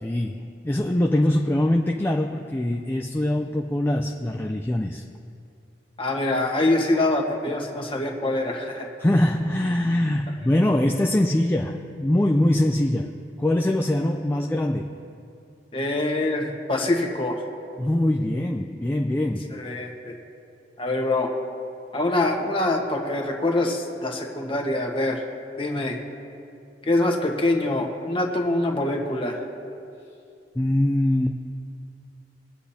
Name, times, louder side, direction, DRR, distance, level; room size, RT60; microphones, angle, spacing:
voice 1, 0.0-5.0 9.0-13.1 13.4-15.0 17.8-19.6 30.6-31.4, left 1 dB, 15° left, 3 dB, 0.4 m, -23 dB
voice 2, 6.0-8.9 15.7-17.4 19.5-20.1 20.8-21.3 21.9-25.2 25.6-26.0 26.8-29.4, left 2 dB, 30° left, 1 dB, 1.3 m, -24 dB
23.5 x 8.2 x 2.8 m, 2.5 s
head